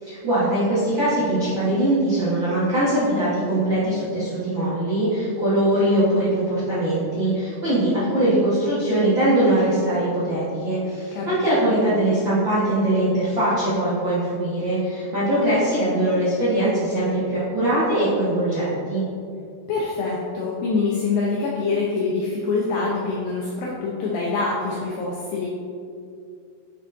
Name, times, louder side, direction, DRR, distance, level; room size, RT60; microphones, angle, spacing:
voice 1, 0.0-19.0, right 1 dB, 90° right, -11 dB, 1.0 m, -21 dB
voice 2, 11.1-11.8 19.7-25.5, left 4 dB, 75° left, -4 dB, 2.3 m, -25 dB
7.3 x 6.8 x 2.6 m, 2.5 s
omnidirectional pair, 4.5 m